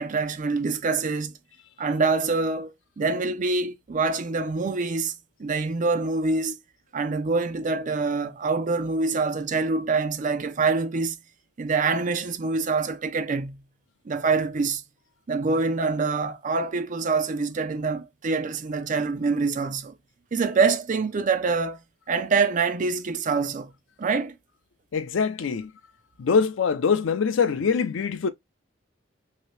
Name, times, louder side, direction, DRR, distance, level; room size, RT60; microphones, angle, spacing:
voice 1, 0.0-1.4 1.8-5.1 5.4-6.6 6.9-11.2 11.6-13.6 14.1-14.8 15.3-19.9 20.3-21.8 22.1-23.7 24.0-24.4, right 4 dB, 40° right, 0.4 m, -25 dB
voice 2, 24.9-25.7 26.2-28.3, left 5 dB, 80° left, 0.4 m, -23 dB
2.8 x 2.7 x 3.2 m
head